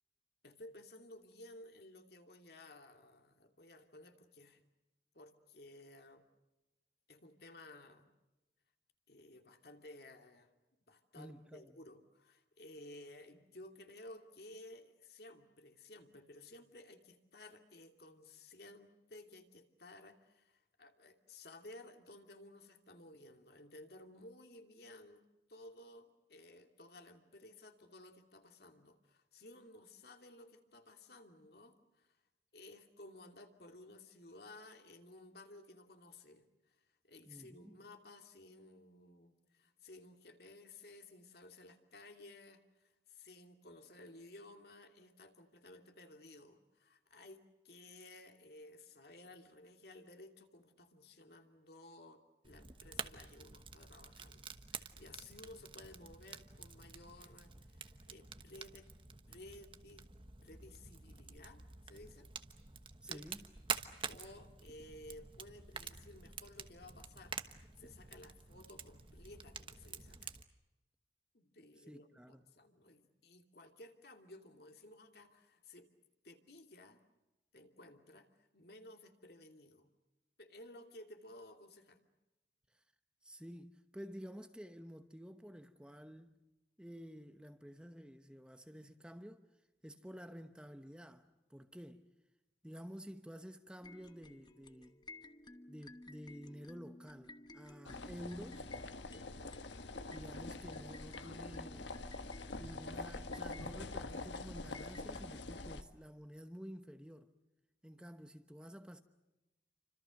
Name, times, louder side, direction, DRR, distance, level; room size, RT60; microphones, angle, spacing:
voice 1, 0.4-4.6 5.1-6.2 7.1-8.1 9.1-10.5 10.9-32.2 32.5-58.9 59.3-60.1 60.4-62.3 63.1-63.2 63.9-70.4 71.3-75.9 76.2-77.0 77.5-78.3 78.5-79.9 80.4-82.0 99.1-99.5, left 1 dB, 60° left, 2.8 m, -56 dB
voice 2, 11.2-11.7 37.3-37.8 63.0-63.5 71.8-72.5 82.7-82.8 83.2-86.4 86.8-89.4 89.8-92.0 92.6-95.0 95.7-98.7 100.0-101.9 102.6-107.3 107.8-109.0, equal, 5° right, 1.0 m, -51 dB
Fire, 52.4-70.4, right 6 dB, 30° right, 1.1 m, -48 dB
sound 1, 93.8-105.5, left 2 dB, 25° left, 1.0 m, -56 dB
sound 2, 97.8-105.8, left 2 dB, 80° left, 1.4 m, -45 dB
29.5 x 26.0 x 6.5 m
head